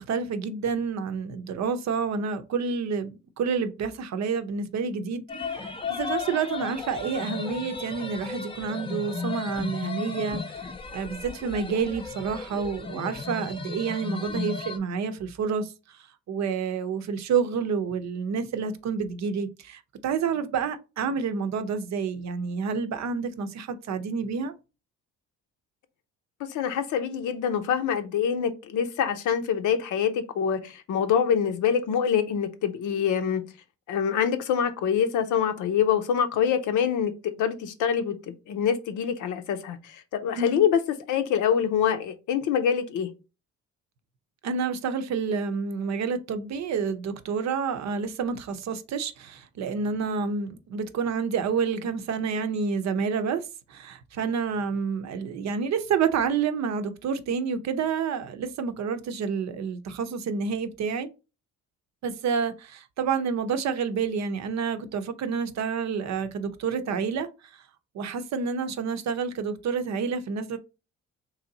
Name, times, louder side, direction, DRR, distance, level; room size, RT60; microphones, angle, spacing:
voice 1, 0.0-3.1 3.4-5.2 5.9-16.0 16.3-24.5 40.4-40.6 44.4-53.4 53.7-61.1 62.0-67.3 67.9-70.6, right 6 dB, 65° right, 0.6 m, -29 dB
sound 1, 5.3-14.8, left 4 dB, 15° left, 0.6 m, -35 dB
voice 2, 26.4-33.4 33.9-40.8 41.1-43.1, left 8 dB, 80° left, 0.7 m, -25 dB
3.2 x 2.7 x 3.9 m
cardioid pair, 90°, 30 cm